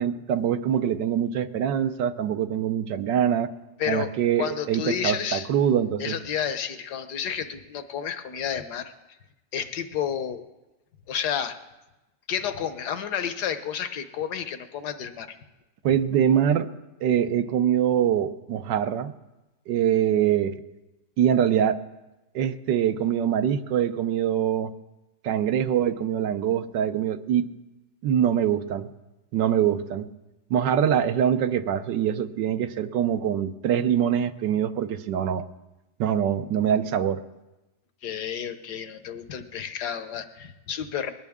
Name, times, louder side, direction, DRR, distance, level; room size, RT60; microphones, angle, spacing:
voice 1, 0.0-3.5 3.9-6.2 15.8-16.7 17.0-19.1 19.7-20.5 21.2-21.8 22.3-24.7 25.2-27.4 28.0-28.9 29.3-30.1 30.5-35.4 36.0-37.2, right 9 dB, 80° right, 10 dB, 1.4 m, -24 dB
voice 2, 3.8-4.1 4.4-5.5 6.0-8.9 9.5-10.4 11.1-11.6 12.3-15.4 38.0-41.1, left 8 dB, 70° left, 10 dB, 1.5 m, -31 dB
21.0 x 18.5 x 3.6 m, 1.0 s
omnidirectional pair, 1.9 m